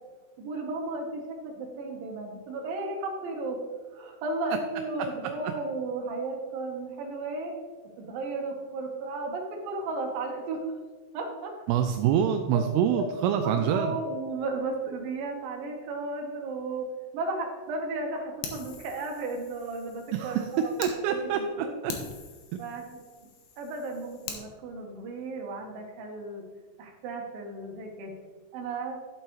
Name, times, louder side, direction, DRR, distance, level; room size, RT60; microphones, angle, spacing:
voice 1, 0.4-3.6 3.9-7.6 8.0-10.6 11.1-11.5 12.5-12.6 12.9-13.1 13.4-16.9 17.1-20.7 21.1-21.8 22.5-22.8 23.6-26.4 26.8-28.1 28.5-29.0, right 3 dB, 65° right, 1 dB, 2.8 m, -34 dB
voice 2, 11.7-14.0 20.1-20.5 20.8-21.9 22.5-22.6, right 9 dB, 85° right, 6 dB, 2.5 m, -26 dB
Fire, 18.4-20.9 21.4-21.5 21.9-24.4, left 5 dB, 70° left, 2.5 m, -42 dB
11.0 x 7.5 x 3.2 m, 1.4 s
omnidirectional pair, 4.7 m